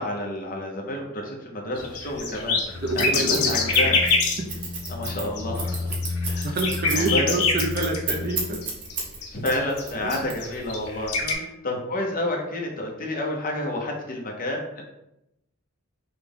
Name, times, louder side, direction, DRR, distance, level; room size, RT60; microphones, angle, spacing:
voice 1, 0.0-4.0 4.9-5.9 6.2-6.5 6.9-7.4 9.3-14.8, left 1 dB, 40° left, 0 dB, 1.0 m, -30 dB
sound 1, 1.8-4.5 4.8-5.1 5.4-8.4 8.6-9.8 10.1-11.3, left 4 dB, 80° left, 0.9 m, -25 dB
sound 2, 2.7-8.7, left 3 dB, 10° left, 0.6 m, -33 dB
voice 2, 2.7-3.7 4.4-4.5 6.4-8.6 10.0-10.2 11.2-11.5, right 2 dB, 45° right, 3 dB, 0.6 m, -28 dB
Scissors, 3.0-9.2 9.4-10.7, right 5 dB, 80° right, 1.4 m, -32 dB
5.9 x 2.3 x 3.6 m, 0.84 s
head